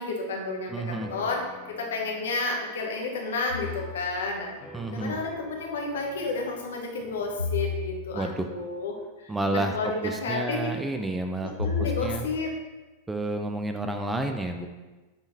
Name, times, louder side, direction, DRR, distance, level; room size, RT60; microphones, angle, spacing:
voice 1, 0.0-1.4 1.8-4.5 4.9-10.7 11.4-12.5, left 3 dB, 65° left, 1 dB, 1.1 m, -31 dB
voice 2, 0.7-1.1 4.7-5.2 8.1-8.5 9.3-9.8 10.0-12.3 13.1-14.7, right 2 dB, 10° right, 5 dB, 0.4 m, -30 dB
sound 1, 1.0-9.7, left 1 dB, 25° left, 1.0 m, -50 dB
sound 2, 3.5-4.3 7.4-8.4 11.6-12.5, left 6 dB, 80° left, 0.6 m, -32 dB
7.0 x 3.8 x 4.0 m, 1.2 s
figure-of-eight pair, 90°, 0 cm